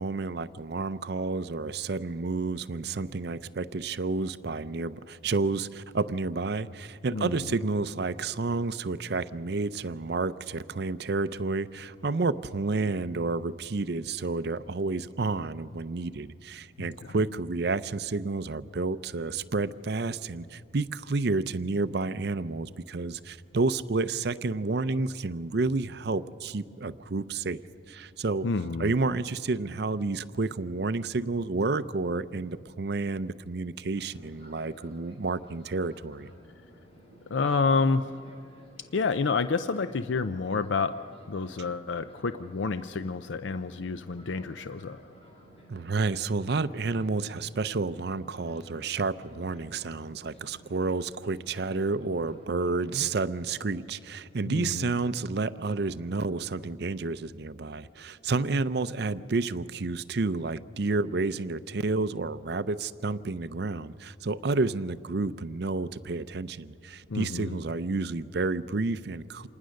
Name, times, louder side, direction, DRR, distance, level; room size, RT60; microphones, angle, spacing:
voice 1, 0.0-27.6 27.9-28.5 28.8-36.3 45.7-69.5, right 3 dB, 60° right, 14 dB, 0.6 m, -30 dB
voice 2, 28.4-28.9 37.3-38.1 38.9-41.0 41.3-45.0 54.5-54.9 67.1-67.6, left 4 dB, 80° left, 11 dB, 0.5 m, -29 dB
Fixed-wing aircraft airplane, 33.9-53.7, equal, 30° left, 4.4 m, -54 dB
27.0 x 19.5 x 6.5 m, 2.4 s
head